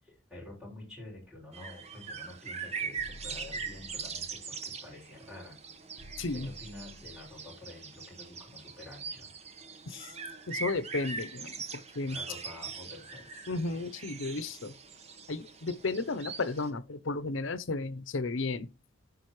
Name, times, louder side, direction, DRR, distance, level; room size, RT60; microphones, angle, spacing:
voice 1, 0.0-5.6 6.3-9.6 12.1-13.5, left 2 dB, ahead, 5.9 m, -49 dB
sound 1, 1.5-16.7, right 5 dB, 30° right, 1.0 m, -42 dB
sound 2, 3.0-4.4 6.0-7.4, equal, 65° right, 1.1 m, -51 dB
voice 2, 6.2-6.5 9.9-10.1 10.5-12.2 13.5-14.7 15.3-18.7, left 3 dB, 80° left, 0.7 m, -34 dB
15.0 x 5.2 x 3.1 m
head